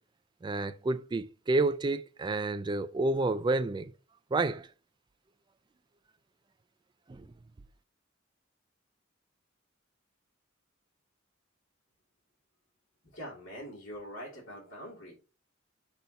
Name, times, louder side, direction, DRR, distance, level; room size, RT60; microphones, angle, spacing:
voice 1, 0.4-3.9 4.3-4.7 7.1-7.3, right 2 dB, 25° right, 0.3 m, -29 dB
voice 2, 13.1-15.1, equal, 70° left, 3.0 m, -43 dB
5.7 x 4.2 x 5.2 m
head